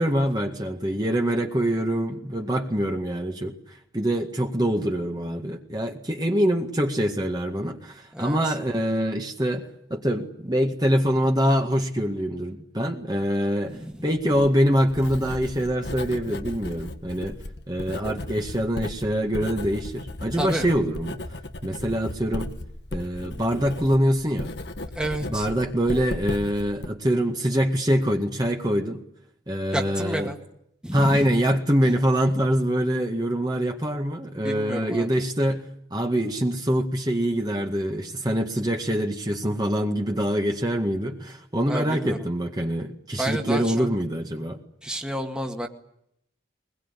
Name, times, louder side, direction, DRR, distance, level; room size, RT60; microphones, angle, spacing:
voice 1, 0.0-3.5 3.9-17.4 17.7-21.2 21.6-22.5 22.9-24.6 25.2-29.0 29.5-30.3 30.9-44.6, equal, 20° right, 2 dB, 1.9 m, -24 dB
voice 2, 8.1-8.5 13.7-13.9 14.4-14.5 20.3-20.7 25.0-25.5 29.7-30.4 30.8-31.3 34.4-35.1 41.7-42.2 43.2-43.9 44.8-45.7, right 1 dB, 5° right, 2 dB, 2.0 m, -30 dB
Writing, 14.1-26.9, left 1 dB, 70° left, 1.5 m, -36 dB
23.0 x 21.0 x 9.9 m, 0.76 s
head